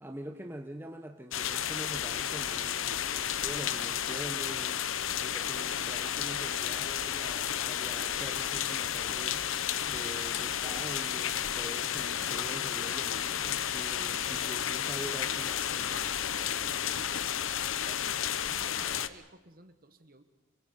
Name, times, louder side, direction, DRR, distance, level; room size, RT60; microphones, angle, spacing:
voice 1, 0.0-9.4 9.9-16.0, right 1 dB, 10° right, 4 dB, 1.0 m, -44 dB
sound 1, 1.3-19.1, left 9 dB, 70° left, 0.8 m, -32 dB
voice 2, 13.9-14.3 15.8-17.4 17.8-20.2, right 2 dB, 45° right, 9 dB, 1.6 m, -53 dB
28.0 x 23.5 x 5.4 m, 1.0 s
head